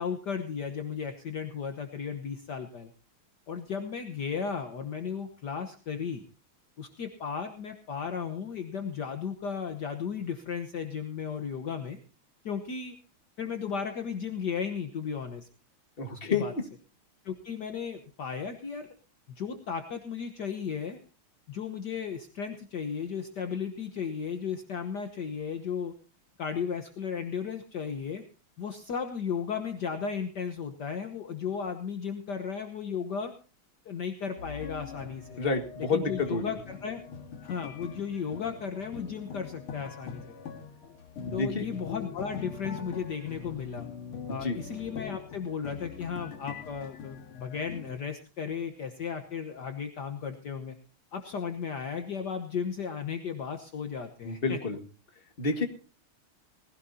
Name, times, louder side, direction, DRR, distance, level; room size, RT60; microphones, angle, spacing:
voice 1, 0.0-2.9 3.5-6.2 6.8-12.0 12.4-12.9 13.4-15.5 16.1-16.5 17.2-18.9 19.4-21.0 21.5-25.9 26.4-28.2 28.6-33.3 33.8-35.4 35.8-37.0 37.4-40.3 41.3-43.9 44.3-50.8 51.1-54.6, left 6 dB, 55° left, 6 dB, 1.6 m, -35 dB
voice 2, 16.0-16.6 35.4-36.6 41.3-41.6 44.3-44.6 54.2-54.8 55.4-55.7, left 4 dB, 25° left, 6 dB, 2.0 m, -29 dB
sound 1, 34.4-48.0, left 7 dB, 75° left, 2.7 m, -43 dB
19.5 x 16.5 x 2.8 m, 0.37 s
omnidirectional pair, 2.4 m